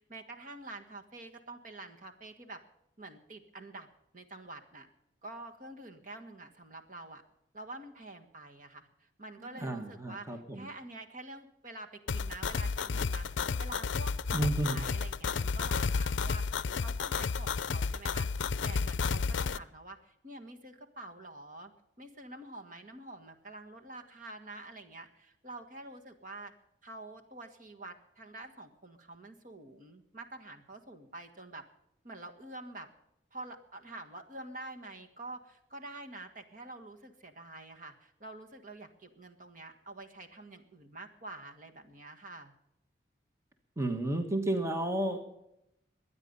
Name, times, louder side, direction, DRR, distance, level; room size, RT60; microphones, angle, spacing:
voice 1, 0.0-2.6 3.0-3.9 4.1-4.9 5.2-7.2 7.5-16.4 16.8-21.7 22.0-26.5 26.8-31.6 32.0-32.9 33.3-42.5, right 2 dB, 45° right, 5 dB, 1.6 m, -47 dB
voice 2, 9.5-10.7 14.3-14.8 43.8-45.2, right 1 dB, 15° right, 6 dB, 1.3 m, -32 dB
sound 1, 12.1-19.6, left 5 dB, 70° left, 0.5 m, -32 dB
22.5 x 9.7 x 5.4 m, 0.83 s
head